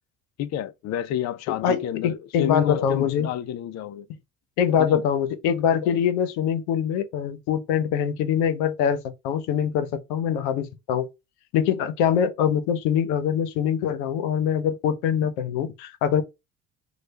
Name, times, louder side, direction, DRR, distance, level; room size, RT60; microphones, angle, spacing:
voice 1, 0.4-4.1 4.8-5.0, left 11 dB, 50° left, 0.5 m, -29 dB
voice 2, 1.6-3.3 4.6-11.1 11.5-16.2, left 8 dB, 80° left, 0.8 m, -24 dB
3.3 x 2.3 x 4.2 m
supercardioid pair, 70°, 36 cm